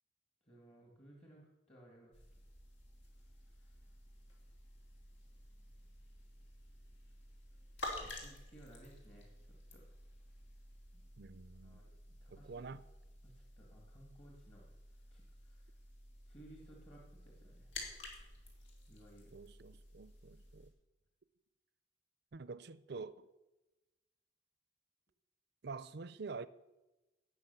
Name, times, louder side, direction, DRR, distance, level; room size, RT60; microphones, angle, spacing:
voice 1, 0.4-2.4 8.0-9.8 10.9-11.0 11.6-12.6 13.2-14.6 15.1-15.7 16.3-17.7 18.9-19.3, right 1 dB, 30° left, 1.9 m, -60 dB
sound 1, 2.1-20.7, left 2 dB, 75° left, 3.1 m, -52 dB
voice 2, 11.2-11.9 12.3-12.8 19.3-20.7 22.3-23.3 25.6-26.5, right 4 dB, 60° right, 0.5 m, -47 dB
17.5 x 6.2 x 6.8 m
head